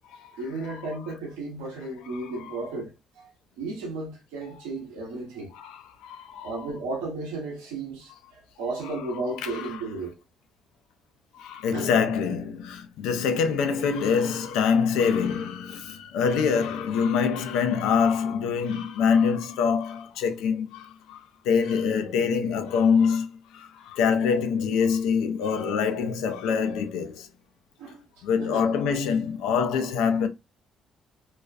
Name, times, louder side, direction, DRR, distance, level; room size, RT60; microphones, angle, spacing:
voice 1, 0.4-3.3 3.6-5.5 6.4-10.2 11.7-11.9 27.8-28.6, right 2 dB, 85° right, 0.8 m, -34 dB
voice 2, 5.5-6.5 9.4-9.7 11.3-27.3 28.2-30.3, left 6 dB, 80° left, 0.4 m, -25 dB
2.4 x 2.2 x 2.3 m
hypercardioid pair, 55°, 0 cm